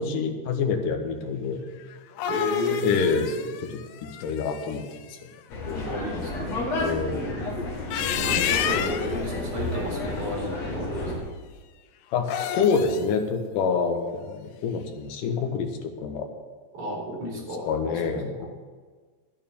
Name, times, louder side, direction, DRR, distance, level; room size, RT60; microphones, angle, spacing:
voice 1, 0.0-1.6 2.8-3.4 3.7-3.8 4.2-4.8 5.1-5.2 5.6-6.0 6.8-7.4 12.1-16.3 17.7-18.5, left 5 dB, 65° left, 4 dB, 2.7 m, -27 dB
sound 1, 1.9-5.0 7.7-9.2 12.2-13.1, left 10 dB, 90° left, 1.7 m, -29 dB
voice 2, 2.3-3.3 5.8-6.7 8.2-11.3 16.7-18.5, equal, 55° right, -4 dB, 5.7 m, -33 dB
sound 2, 5.5-11.2, left 2 dB, 50° left, 3.1 m, -31 dB
11.0 x 9.2 x 7.2 m, 1.5 s
omnidirectional pair, 4.4 m